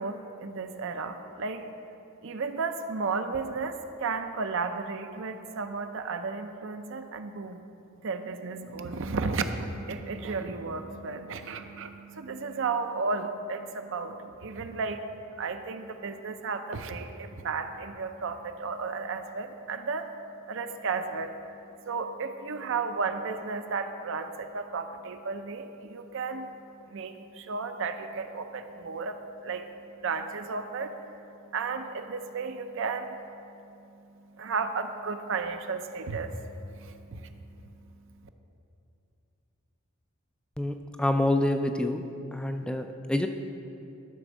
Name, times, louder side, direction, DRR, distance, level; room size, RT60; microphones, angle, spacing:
voice 1, 0.0-1.6 2.2-7.6 7.9-15.0 15.4-20.1 20.5-21.3 21.9-26.5 26.9-29.2 29.4-29.7 30.0-31.0 31.5-33.2 34.4-36.3 36.8-37.3, right 4 dB, 60° right, 7 dB, 0.6 m, -33 dB
voice 2, 40.6-42.0 42.3-43.3, left 1 dB, 5° left, 6 dB, 0.3 m, -27 dB
12.5 x 4.3 x 6.1 m, 2.8 s
head